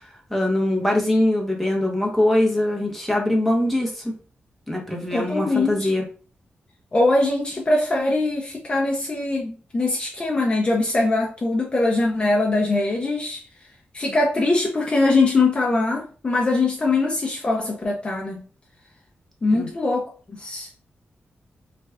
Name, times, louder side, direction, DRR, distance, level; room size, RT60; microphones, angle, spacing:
voice 1, 0.3-4.1 4.7-6.0 14.1-14.2 19.5-19.7, left 1 dB, 5° left, 0 dB, 0.8 m, -22 dB
voice 2, 5.1-5.9 6.9-13.4 13.9-18.4 19.4-20.0 20.3-20.7, left 2 dB, 30° left, -2 dB, 0.6 m, -22 dB
3.3 x 2.3 x 3.4 m, 0.38 s
wide cardioid pair, 165°, 4 cm